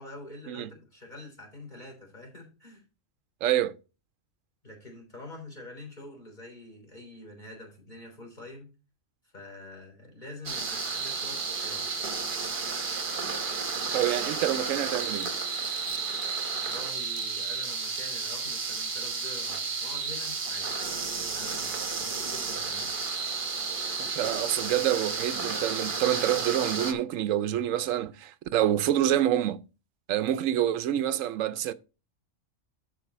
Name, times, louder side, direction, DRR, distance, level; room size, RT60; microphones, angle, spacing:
voice 1, 0.0-2.8 4.6-8.7 9.3-11.8 16.6-20.7 21.1-22.9, left 2 dB, 35° left, 3.7 m, -46 dB
voice 2, 3.4-3.8 13.9-15.3 24.0-29.6 30.1-31.7, right 11 dB, 80° right, 1.0 m, -27 dB
sound 1, 10.5-26.9, right 4 dB, 45° right, 1.2 m, -32 dB
11.5 x 4.7 x 4.1 m
omnidirectional pair, 1.3 m